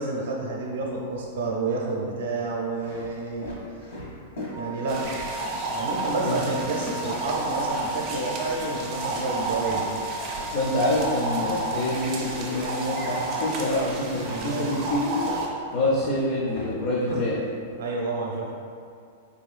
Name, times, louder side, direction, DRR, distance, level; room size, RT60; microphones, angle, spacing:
voice 1, 0.0-3.6 4.6-5.1 5.7-10.0 14.2-14.7 17.8-18.5, right 3 dB, 70° right, -2 dB, 0.5 m, -29 dB
sound 1, 0.8-1.5 2.2-7.3 7.6-13.9 14.1-17.8, left 1 dB, 60° left, 1.1 m, -40 dB
sound 2, 4.5-11.1, right 1 dB, 85° left, 1.4 m, -38 dB
sound 3, 4.9-15.5, right 2 dB, 25° right, 0.4 m, -31 dB
voice 2, 10.5-15.3 15.7-17.4, left 1 dB, 40° left, -5 dB, 0.5 m, -26 dB
3.9 x 3.0 x 2.4 m, 2.3 s
supercardioid pair, 170°, 0 cm